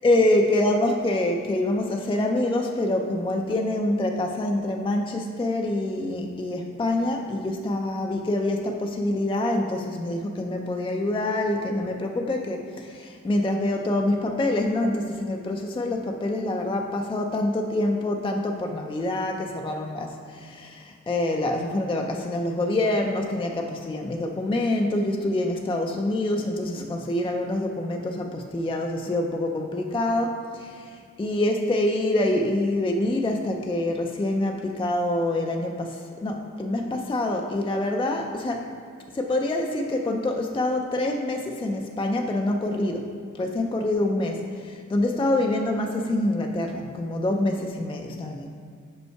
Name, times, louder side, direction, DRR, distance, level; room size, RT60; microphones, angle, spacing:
voice 1, 0.0-38.7 39.1-43.1 43.4-48.5, left 1 dB, 15° left, 2 dB, 0.4 m, -26 dB
5.4 x 5.4 x 4.5 m, 2.1 s
cardioid pair, 90°, 30 cm